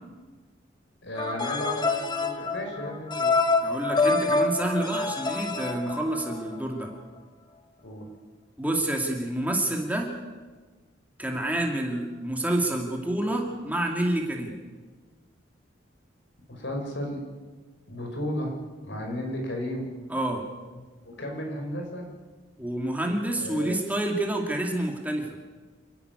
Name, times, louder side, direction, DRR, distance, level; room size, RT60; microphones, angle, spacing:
voice 1, 1.0-3.4 7.8-8.1 16.5-17.2 17.9-18.5 18.8-19.9 21.0-22.0 23.4-23.8, left 1 dB, 70° left, 2 dB, 5.9 m, -33 dB
sound 1, 1.2-6.6, left 3 dB, 25° left, 1.5 m, -26 dB
voice 2, 3.6-6.9 8.6-10.1 11.2-14.6 20.1-20.4 22.6-25.3, right 1 dB, 10° right, 1 dB, 2.5 m, -28 dB
28.0 x 12.0 x 9.7 m, 1.3 s
head